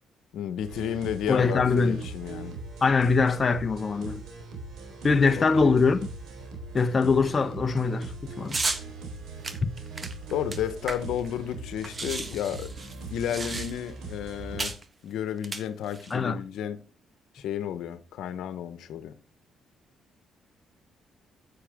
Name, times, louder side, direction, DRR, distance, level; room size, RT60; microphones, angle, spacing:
voice 1, 0.3-2.5 5.4-5.7 10.3-14.8 15.0-16.8 17.3-19.1, left 9 dB, 80° left, 1.0 m, -32 dB
sound 1, 0.6-14.7, right 3 dB, 80° right, 3.9 m, -41 dB
voice 2, 1.3-2.0 2.8-4.2 5.0-6.1 6.7-8.5 9.6-9.7 16.1-16.4, left 4 dB, 35° left, 0.8 m, -23 dB
sound 2, 8.5-8.8 9.4-11.3 11.5-11.6 11.8-14.0 14.6-14.8 15.4-16.1, right 3 dB, 30° right, 1.4 m, -33 dB
9.9 x 8.8 x 3.6 m
cardioid pair, 90°, 0 cm